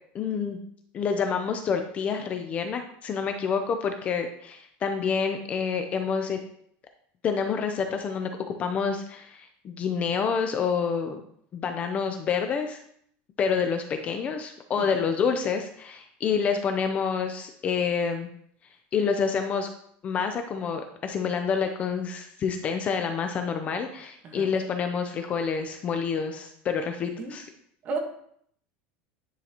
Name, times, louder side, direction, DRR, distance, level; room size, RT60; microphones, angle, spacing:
voice 1, 0.1-0.6 0.9-6.4 7.2-11.2 11.5-12.8 13.4-18.3 18.9-19.7 20.0-27.5, left 6 dB, 25° left, 6 dB, 0.5 m, -28 dB
voice 2, 14.8-14.9 24.2-24.5 27.2-27.3 27.8-28.0, right 4 dB, 35° right, 3 dB, 1.3 m, -33 dB
10.0 x 3.9 x 2.9 m, 0.66 s
cardioid pair, 160°, 5 cm